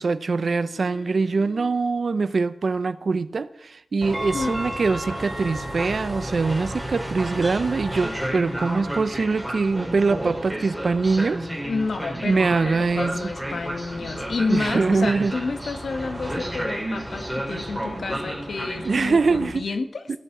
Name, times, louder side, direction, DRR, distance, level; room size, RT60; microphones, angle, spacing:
voice 1, 0.0-11.5 12.2-13.1 14.5-15.3 18.8-19.6, right 4 dB, 60° right, 14 dB, 0.8 m, -23 dB
voice 2, 0.7-1.7 4.3-4.6 11.6-20.0, left 4 dB, 70° left, 8 dB, 1.7 m, -30 dB
Train, 4.0-19.5, right 1 dB, ahead, 4.9 m, -31 dB
17.0 x 8.4 x 7.4 m, 0.74 s
wide cardioid pair, 110°, 0 cm